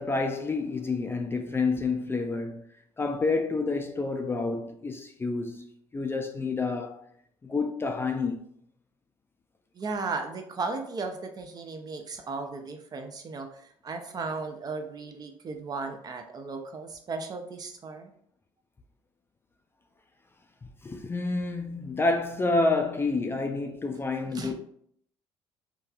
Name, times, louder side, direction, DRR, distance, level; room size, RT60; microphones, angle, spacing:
voice 1, 0.0-2.6 3.0-5.7 5.9-7.0 7.4-8.4 20.8-24.5, left 3 dB, 20° left, 0.3 m, -28 dB
voice 2, 9.7-18.1 24.3-24.5, right 4 dB, 35° right, 0.5 m, -36 dB
2.9 x 2.3 x 2.4 m
supercardioid pair, 75°, 11 cm